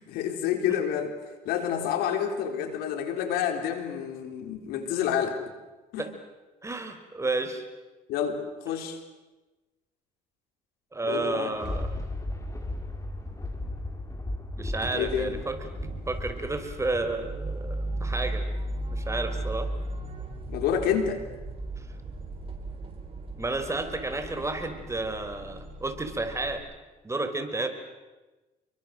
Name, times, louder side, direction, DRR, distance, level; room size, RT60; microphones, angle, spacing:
voice 1, 0.1-1.1 1.5-5.3 5.9-6.1 8.1-9.0 11.0-11.5 14.9-15.3 20.5-21.2, left 8 dB, 85° left, 7 dB, 4.0 m, -28 dB
voice 2, 6.6-7.6 10.9-11.9 14.6-15.7 16.1-18.4 18.9-19.7 21.8-21.9 23.4-26.6 27.0-27.7, right 2 dB, 20° right, 7 dB, 4.6 m, -31 dB
Thunder, 11.2-18.7 19.2-19.3, left 1 dB, 20° left, 5.1 m, -36 dB
sound 1, 14.8-26.6, right 1 dB, 35° right, 7.7 m, -36 dB
29.5 x 24.0 x 7.7 m, 1.2 s
supercardioid pair, 80°, 16 cm